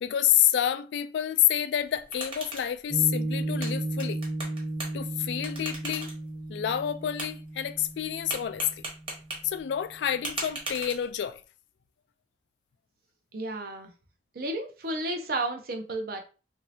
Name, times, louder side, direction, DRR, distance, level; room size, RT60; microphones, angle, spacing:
voice 1, 0.0-4.2 4.9-6.1 6.5-8.8 9.4-11.4, left 11 dB, 75° left, 0.3 m, -28 dB
sound 1, 1.8-11.4, right 2 dB, 30° right, 1.1 m, -41 dB
Piano, 2.9-9.6, right 1 dB, 15° left, 0.6 m, -34 dB
voice 2, 13.3-13.9 14.3-16.2, right 2 dB, 55° right, 0.6 m, -32 dB
3.1 x 2.7 x 2.7 m
head